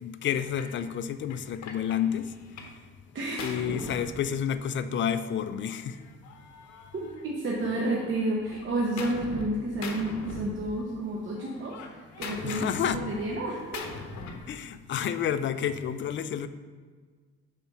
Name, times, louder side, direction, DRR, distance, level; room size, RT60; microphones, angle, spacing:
voice 1, 0.0-2.3 3.4-5.9 12.4-13.0 14.5-16.5, left 9 dB, 40° left, 12 dB, 0.4 m, -30 dB
Gunshot gunfire, 0.6-0.8 1.3-2.8 3.1-4.8 5.7-7.6 7.9-9.5 9.8-11.0 11.3-14.5, left 4 dB, 65° left, 0.9 m, -41 dB
voice 2, 3.1-3.8 6.9-13.8, right 2 dB, 40° right, -3 dB, 1.0 m, -31 dB
5.3 x 4.2 x 5.8 m, 1.5 s
cardioid pair, 90°, 30 cm